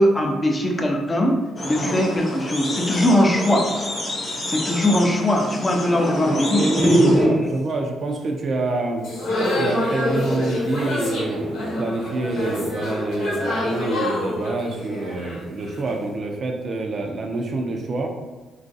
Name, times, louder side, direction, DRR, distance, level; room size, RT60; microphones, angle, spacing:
voice 1, 0.0-3.7 4.5-7.4, equal, 20° left, 1 dB, 0.5 m, -20 dB
sound 1, 1.6-7.2, left 1 dB, 40° left, 0.9 m, -28 dB
voice 2, 6.2-9.0 9.5-18.1, right 2 dB, 45° right, 2 dB, 0.4 m, -26 dB
sound 2, 9.0-16.0, left 1 dB, 80° left, 0.9 m, -26 dB
2.9 x 2.4 x 2.6 m, 1.2 s
cardioid pair, 90°, 0 cm